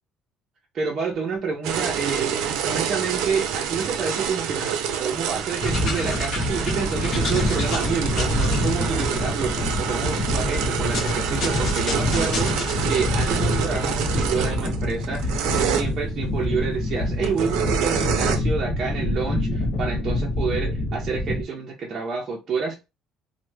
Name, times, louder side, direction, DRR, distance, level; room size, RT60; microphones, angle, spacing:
voice 1, 0.7-2.4 2.6-22.7, right 5 dB, 35° right, 0.5 m, -29 dB
sound 1, 1.6-15.8 17.2-18.4, right 8 dB, 90° right, 0.5 m, -27 dB
sound 2, 5.6-21.4, left 1 dB, 40° left, 0.9 m, -26 dB
3.1 x 2.1 x 3.2 m
cardioid pair, 165°, 0 cm